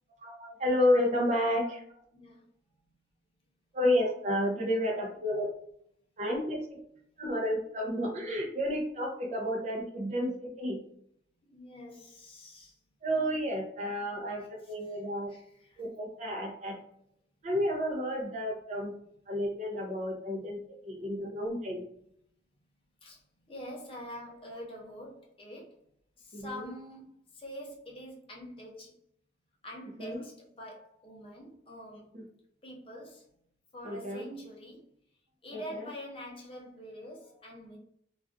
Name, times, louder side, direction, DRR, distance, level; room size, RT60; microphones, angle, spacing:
voice 1, 0.2-2.0 3.7-5.5 6.2-6.8 7.2-10.8 13.0-15.3 15.8-16.8 17.4-18.9 19.3-20.6 20.8-21.8 26.3-26.7 30.0-30.2 32.1-32.2 33.8-34.3 35.5-35.8, left 1 dB, 40° right, 1 dB, 0.5 m, -31 dB
voice 2, 2.1-2.4 11.5-12.8 14.6-15.0 15.3-15.8 23.0-23.2 23.5-25.8 26.2-29.0 29.6-32.1 32.6-33.3 33.7-34.8 35.4-37.8, equal, 30° left, -2 dB, 0.6 m, -45 dB
2.3 x 2.3 x 2.4 m, 0.67 s
head